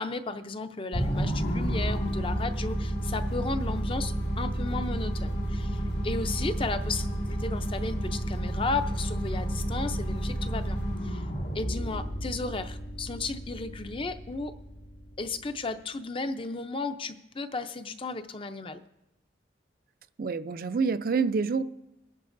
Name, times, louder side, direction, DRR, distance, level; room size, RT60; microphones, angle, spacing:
voice 1, 0.0-11.2 11.5-14.5 15.2-18.8, left 3 dB, 30° left, 0.6 m, -34 dB
sound 1, 0.9-15.4, right 1 dB, 80° left, 1.9 m, -31 dB
voice 2, 20.2-21.6, right 5 dB, 55° right, 0.4 m, -27 dB
21.0 x 11.0 x 2.6 m
head